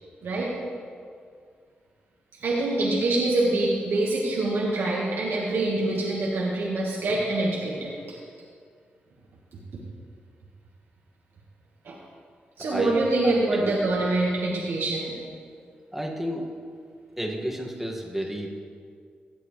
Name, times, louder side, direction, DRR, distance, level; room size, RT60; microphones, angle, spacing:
voice 1, 2.4-8.2 9.7-9.8 11.8-12.0 12.6-15.2, right 2 dB, 75° right, -4 dB, 1.6 m, -25 dB
voice 2, 12.6-13.7 15.9-16.5 17.2-18.6, equal, 5° right, -1 dB, 1.9 m, -32 dB
16.0 x 7.9 x 3.3 m, 2.1 s
cardioid pair, 50°, 4 cm